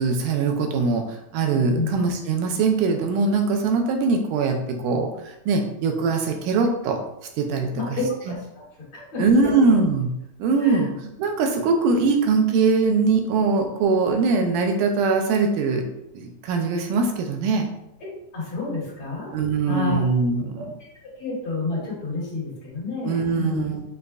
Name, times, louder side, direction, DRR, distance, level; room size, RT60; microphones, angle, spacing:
voice 1, 0.0-7.0 7.4-8.0 8.3-8.4 9.2-10.1 10.4-15.9 16.1-17.7 19.3-20.7 23.0-23.8, right 4 dB, 85° right, 4 dB, 2.1 m, -22 dB
voice 2, 7.7-8.3 8.9-9.6 10.6-10.8 18.3-19.3 19.7-20.0 20.6-20.7 21.2-23.7, left 3 dB, 45° left, -7 dB, 2.2 m, -29 dB
6.5 x 2.5 x 2.3 m, 0.83 s
omnidirectional pair, 3.6 m